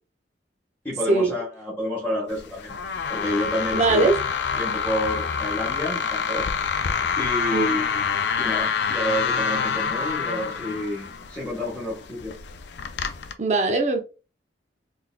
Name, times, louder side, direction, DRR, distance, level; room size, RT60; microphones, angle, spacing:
voice 1, 0.8-2.7 3.1-4.1 4.6-6.5 7.2-12.3, left 1 dB, 10° left, 1.3 m, -29 dB
sound 1, 2.3-13.3, left 6 dB, 65° left, 0.4 m, -27 dB
voice 2, 3.7-4.2 7.5-7.8 13.4-14.0, right 3 dB, 40° right, 0.6 m, -21 dB
3.9 x 3.5 x 2.2 m
head